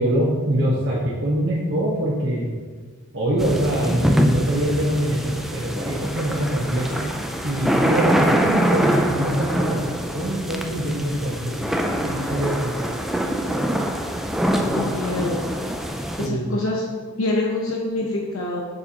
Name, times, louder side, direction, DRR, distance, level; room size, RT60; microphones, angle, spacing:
voice 1, 0.0-2.5 3.1-7.1 7.4-11.6 12.0-12.7 16.2-16.6, right 1 dB, 55° right, -7 dB, 1.2 m, -24 dB
sound 1, 3.4-16.3, equal, ahead, 0.3 m, -24 dB
voice 2, 14.8-15.5 16.2-16.9 17.2-18.6, left 2 dB, 65° left, -2 dB, 0.8 m, -25 dB
6.9 x 6.8 x 2.9 m, 1.5 s
head